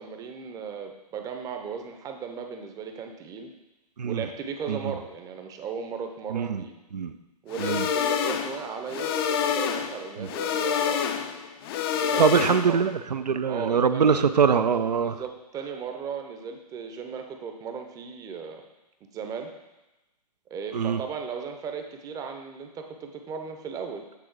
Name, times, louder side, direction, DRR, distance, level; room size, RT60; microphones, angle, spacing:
voice 1, 0.0-3.5 4.1-6.7 7.4-11.0 11.9-12.8 13.4-14.3 15.0-18.6 19.1-19.5 20.5-24.2, right 6 dB, 15° right, 5 dB, 0.6 m, -36 dB
voice 2, 6.3-6.6 6.9-7.2 7.6-7.9 10.2-10.3 12.2-15.2 20.7-21.0, right 6 dB, 85° right, 11 dB, 0.5 m, -23 dB
sound 1, 7.5-12.9, left 8 dB, 35° left, 0.5 m, -27 dB
8.7 x 3.8 x 4.7 m, 1.0 s
figure-of-eight pair, 125°, 21 cm